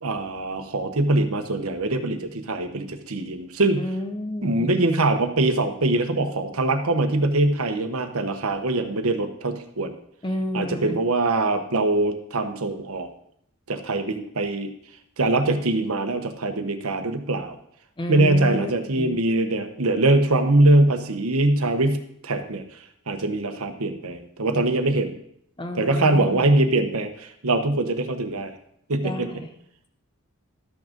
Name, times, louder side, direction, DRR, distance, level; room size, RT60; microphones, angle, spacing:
voice 1, 0.0-3.8 4.4-10.0 10.5-13.1 13.7-14.7 15.2-17.6 18.1-22.6 23.1-25.1 25.7-28.5 28.9-29.3, right 2 dB, 75° right, 7 dB, 1.1 m, -23 dB
voice 2, 3.8-4.7 10.2-11.0 18.0-18.7 19.0-19.2 25.6-26.5 29.0-29.5, left 1 dB, 20° left, 6 dB, 0.8 m, -30 dB
12.5 x 6.3 x 5.2 m, 0.71 s
head